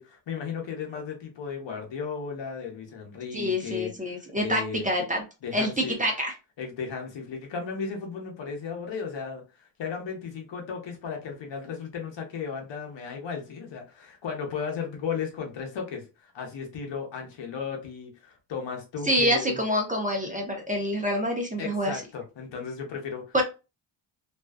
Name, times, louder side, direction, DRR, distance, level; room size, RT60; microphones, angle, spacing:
voice 1, 0.0-4.9 5.4-6.0 6.6-19.6 21.6-23.3, left 6 dB, 60° left, 1.0 m, -35 dB
voice 2, 3.3-5.2 5.5-6.3 19.1-22.0 23.3-23.4, equal, 15° right, 0.7 m, -26 dB
2.6 x 2.3 x 2.2 m
cardioid pair, 70°, 49 cm